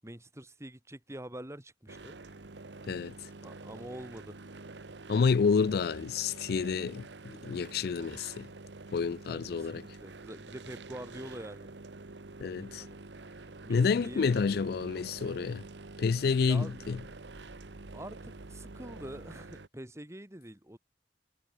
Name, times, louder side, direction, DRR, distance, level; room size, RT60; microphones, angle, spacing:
voice 1, 0.0-2.2 3.4-4.4 9.2-11.7 12.7-13.0 13.6-14.3 16.4-17.0 17.9-20.8, right 1 dB, 15° right, 2.4 m, -45 dB
sound 1, 1.9-2.6 4.1-5.0 6.4-6.7 6.9-7.6 8.9-9.6, left 5 dB, 80° left, 7.5 m, -73 dB
sound 2, 1.9-19.7, right 3 dB, 85° right, 1.2 m, -47 dB
voice 2, 5.1-8.5 8.9-9.8 12.4-12.8 13.7-15.6 16.0-17.0, left 5 dB, 60° left, 0.4 m, -29 dB
head